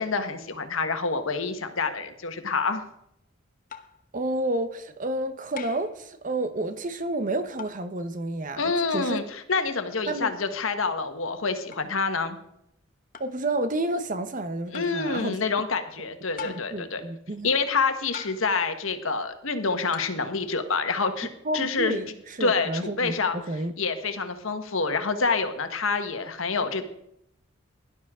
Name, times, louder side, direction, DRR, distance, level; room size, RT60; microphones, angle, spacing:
voice 1, 0.0-2.8 8.6-12.4 14.7-17.0 17.4-21.3 21.5-21.9 22.4-23.4 23.8-26.8, left 4 dB, 80° left, 1.4 m, -27 dB
sound 1, 3.7-4.0 5.6-6.0 7.6-7.9 9.6-9.8 11.7-11.9 13.1-13.4 14.7-15.0 16.4-16.8 18.1-18.6 19.9-20.2, left 7 dB, 40° left, 1.0 m, -41 dB
voice 2, 4.1-9.2 10.1-10.4 13.2-15.4 16.4-17.5 21.4-23.7, right 2 dB, 40° right, 1.0 m, -30 dB
17.0 x 11.5 x 3.7 m
head